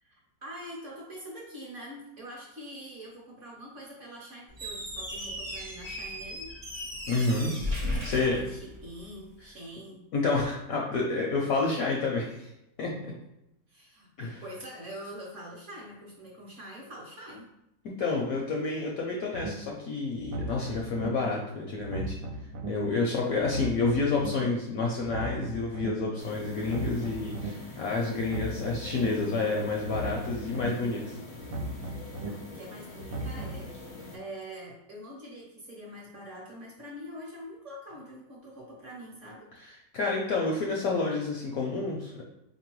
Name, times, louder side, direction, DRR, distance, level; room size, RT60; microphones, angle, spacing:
voice 1, 0.0-6.5 8.0-10.0 13.7-17.5 32.2-33.7 34.1-39.5, equal, 50° right, -3 dB, 1.0 m, -44 dB
Squeak, 4.5-9.1, left 1 dB, 30° right, 0.4 m, -36 dB
voice 2, 7.1-7.5 8.0-8.4 10.1-12.5 12.8-13.1 14.2-14.4 18.0-22.2 22.7-31.2 39.9-42.2, left 3 dB, 70° left, -1 dB, 0.8 m, -29 dB
sound 1, 19.3-19.5 20.1-21.1 21.7-22.7 23.3-24.3 24.9-25.9 26.5-27.5 28.1-29.1 29.7-30.7 31.3-32.3 32.9-33.6, right 2 dB, 70° right, 1.2 m, -36 dB
sound 2, 26.2-34.2, left 2 dB, 50° left, 0.3 m, -45 dB
4.1 x 2.9 x 3.0 m, 0.87 s
omnidirectional pair, 1.9 m